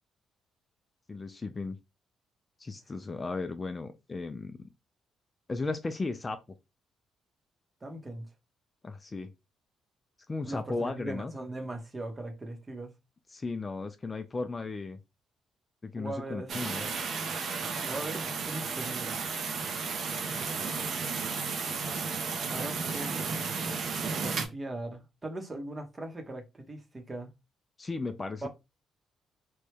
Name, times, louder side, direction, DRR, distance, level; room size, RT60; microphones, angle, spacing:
voice 1, 1.1-1.8 2.6-4.6 5.5-6.4 8.8-9.3 10.3-11.3 13.3-15.0 15.8-16.9 27.8-28.5, left 3 dB, 25° left, 0.4 m, -35 dB
voice 2, 7.8-8.3 10.4-12.9 16.0-17.0 17.8-19.2 22.5-23.4 24.2-27.3 28.4-28.5, right 2 dB, 25° right, 0.8 m, -40 dB
sound 1, 16.5-24.4, right 5 dB, 60° right, 0.6 m, -33 dB
3.1 x 2.2 x 3.3 m
cardioid pair, 90°, 0 cm